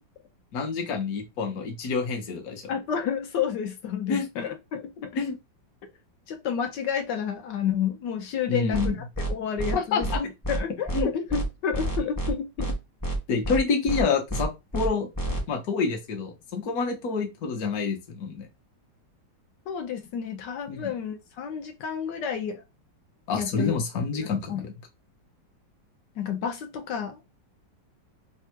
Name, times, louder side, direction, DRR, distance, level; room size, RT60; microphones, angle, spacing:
voice 1, 0.5-2.6 4.1-4.3 5.1-5.4 8.5-9.0 9.7-10.2 10.9-11.1 13.3-15.1 15.5-18.5 20.7-20.9 23.3-24.7, left 5 dB, 55° left, 1.3 m, -28 dB
voice 2, 2.7-5.2 6.3-12.8 19.7-22.6 23.3-23.7 24.1-24.6 26.2-27.2, left 7 dB, 75° left, 1.3 m, -30 dB
sound 1, 8.7-8.9 9.2-9.3 9.6-9.7 10.0-10.2 10.4-10.6 10.9-11.0 11.3-11.4 11.7-12.3 12.6-12.7 13.0-13.2 13.4-13.6 13.9-14.0 14.3-14.4 14.7-14.9 15.2-15.4, right 2 dB, 20° left, 0.6 m, -29 dB
3.5 x 2.4 x 4.4 m
omnidirectional pair, 2.0 m